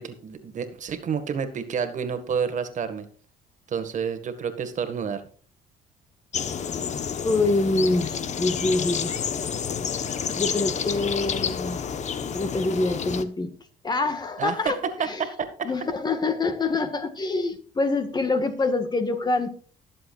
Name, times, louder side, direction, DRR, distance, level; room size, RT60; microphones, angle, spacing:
voice 1, 0.0-3.1 3.7-5.2 14.4-14.6 14.8-15.7, right 6 dB, 45° right, 9 dB, 1.8 m, -29 dB
sound 1, 6.3-13.2, left 7 dB, 45° left, 1.1 m, -29 dB
voice 2, 7.2-9.1 10.3-11.8 12.3-13.5 13.8-15.2 15.6-19.5, left 3 dB, 25° left, 9 dB, 1.7 m, -25 dB
20.5 x 7.6 x 2.5 m, 0.42 s
cardioid pair, 110°, 17 cm